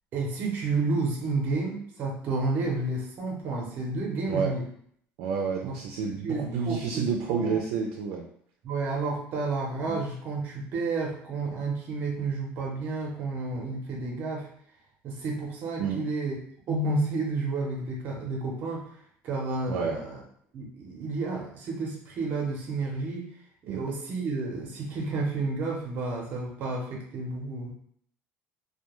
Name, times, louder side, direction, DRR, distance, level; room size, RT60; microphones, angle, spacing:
voice 1, 0.1-4.7 5.6-5.8 6.2-7.6 8.6-14.5 15.0-16.4 16.7-18.9 19.2-20.2 20.5-23.3 23.6-27.7, right 3 dB, 40° right, -1 dB, 0.7 m, -31 dB
voice 2, 5.2-8.2 9.9-10.0 15.8-16.0 19.7-20.0 23.7-23.8, right 5 dB, 85° right, 1 dB, 0.4 m, -29 dB
2.2 x 2.2 x 3.0 m, 0.63 s
cardioid pair, 175°, 5 cm